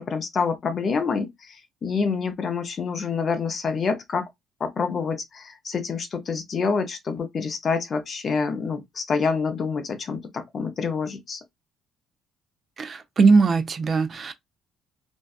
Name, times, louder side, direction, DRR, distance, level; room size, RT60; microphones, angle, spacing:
voice 1, 0.0-4.3 4.6-11.4, left 5 dB, 35° left, 0.5 m, -27 dB
voice 2, 12.8-14.5, right 4 dB, 30° right, 0.3 m, -20 dB
2.5 x 2.2 x 2.2 m
cardioid pair, 150°, 0 cm